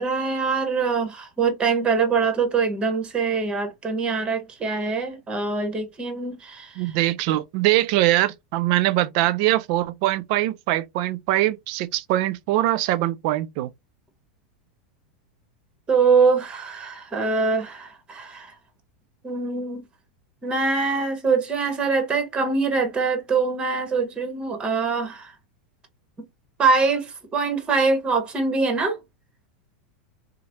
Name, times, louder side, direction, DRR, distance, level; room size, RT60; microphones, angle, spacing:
voice 1, 0.0-6.9 15.9-18.5 19.2-19.8 20.4-25.3 26.6-29.0, right 4 dB, 20° right, 1.0 m, -23 dB
voice 2, 6.8-13.7, right 15 dB, 55° right, 0.3 m, -22 dB
3.0 x 2.0 x 2.7 m
hypercardioid pair, 100°, 4 cm